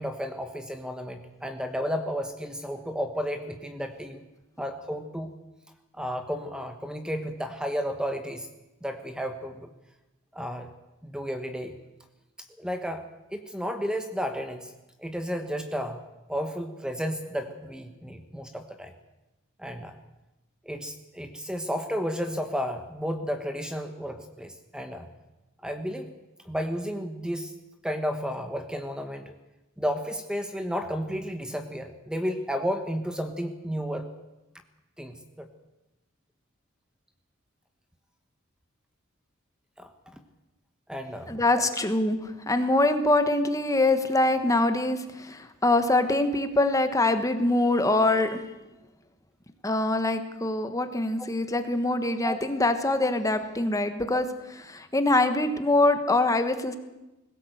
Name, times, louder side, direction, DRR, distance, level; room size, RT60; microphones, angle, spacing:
voice 1, 0.0-4.2 4.6-5.3 6.0-8.5 8.8-9.7 10.3-10.7 11.0-11.7 12.6-13.0 13.3-14.7 15.0-16.0 16.3-18.9 19.6-19.9 20.6-25.1 25.6-26.1 26.4-27.5 27.8-29.3 29.8-34.1 35.0-35.5 39.8-39.9 40.9-41.6 51.2-51.3 52.2-52.4, equal, 5° right, 7 dB, 1.2 m, -32 dB
voice 2, 41.3-42.2 42.5-48.4 49.6-56.8, left 2 dB, 15° left, 8 dB, 1.3 m, -24 dB
20.5 x 17.0 x 8.0 m, 1.0 s
head